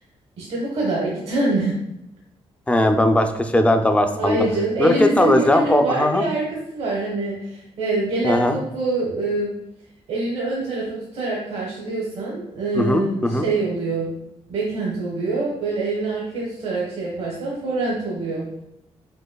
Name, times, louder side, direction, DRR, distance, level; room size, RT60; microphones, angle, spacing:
voice 1, 0.4-1.8 4.1-6.4 6.7-9.5 10.1-14.1 14.5-18.5, right 2 dB, 70° right, -4 dB, 1.0 m, -25 dB
voice 2, 2.7-4.5 4.8-6.2 8.2-8.6 12.7-13.5, left 1 dB, 10° left, 6 dB, 0.4 m, -18 dB
5.2 x 4.0 x 2.2 m, 0.84 s
cardioid pair, 110°, 11 cm